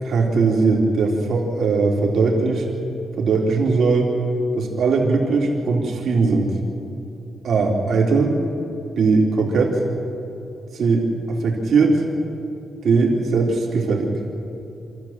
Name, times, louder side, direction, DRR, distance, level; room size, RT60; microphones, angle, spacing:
voice 1, 0.0-2.7 3.2-4.1 4.6-6.5 7.4-8.3 9.0-9.8 10.7-12.0 12.8-14.1, right 4 dB, 60° right, -1 dB, 3.6 m, -19 dB
27.5 x 13.5 x 7.5 m, 2.8 s
wide cardioid pair, 145°, 0 cm